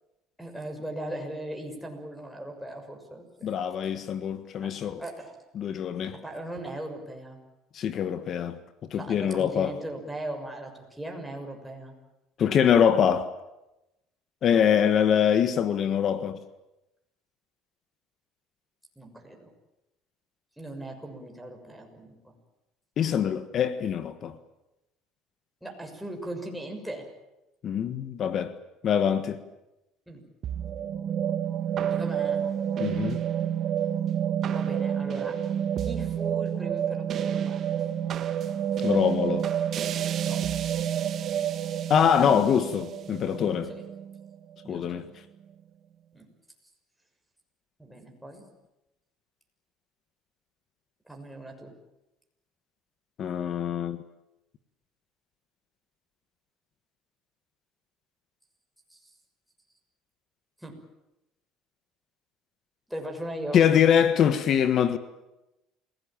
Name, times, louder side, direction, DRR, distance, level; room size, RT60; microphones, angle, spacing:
voice 1, 0.4-3.5 4.6-4.7 5.0-5.4 6.1-7.4 8.9-11.9 19.0-19.5 20.6-22.3 25.6-27.1 30.1-30.2 31.9-32.5 34.5-35.4 35.8-37.8 40.3-40.5 43.7-43.8 44.6-45.0 46.1-46.3 47.8-48.4 51.1-51.7 58.9-59.0 60.6-60.8 62.9-63.6, right 1 dB, ahead, 6.5 m, -38 dB
voice 2, 3.4-5.0 5.5-6.2 7.7-8.6 8.9-9.7 12.4-13.3 14.4-16.4 23.0-24.3 27.6-28.5 28.8-29.4 32.8-33.2 38.8-39.5 41.9-43.7 44.7-45.0 53.2-54.0 63.5-65.0, left 8 dB, 50° left, 1.5 m, -24 dB
sound 1, 30.4-44.9, right 9 dB, 50° right, 1.7 m, -29 dB
28.5 x 18.0 x 9.0 m
supercardioid pair, 105°, 0 cm